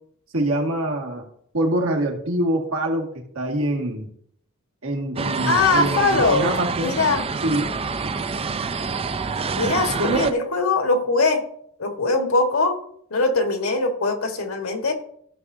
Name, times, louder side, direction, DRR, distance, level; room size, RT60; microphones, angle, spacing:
voice 1, 0.3-1.2 1.5-4.1 4.8-6.9 7.4-7.7 10.0-10.4, right 1 dB, 70° right, 1 dB, 1.9 m, -24 dB
sound 1, 5.2-10.3, right 4 dB, 25° right, 0.4 m, -27 dB
voice 2, 5.5-6.5 6.8-7.2 9.6-11.4 11.8-12.8 13.1-14.9, left 3 dB, 70° left, 4 dB, 1.6 m, -21 dB
15.0 x 6.1 x 2.7 m, 0.66 s
head